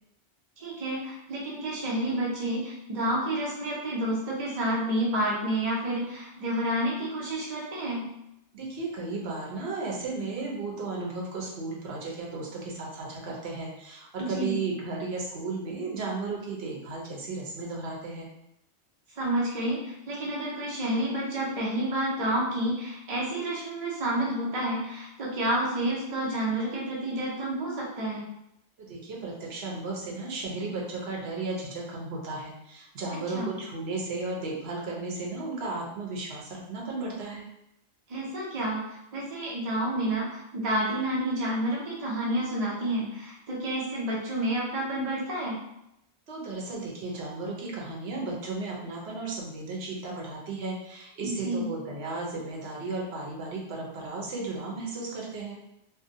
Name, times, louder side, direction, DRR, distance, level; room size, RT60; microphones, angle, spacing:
voice 1, 0.6-8.1 14.2-14.6 19.2-28.3 33.1-33.5 38.1-45.6 51.2-51.7, right 1 dB, 45° right, -5 dB, 0.5 m, -29 dB
voice 2, 8.5-18.3 28.8-37.5 46.3-55.6, right 3 dB, 70° right, -2 dB, 0.9 m, -34 dB
2.5 x 2.1 x 2.6 m, 0.82 s
omnidirectional pair, 1.1 m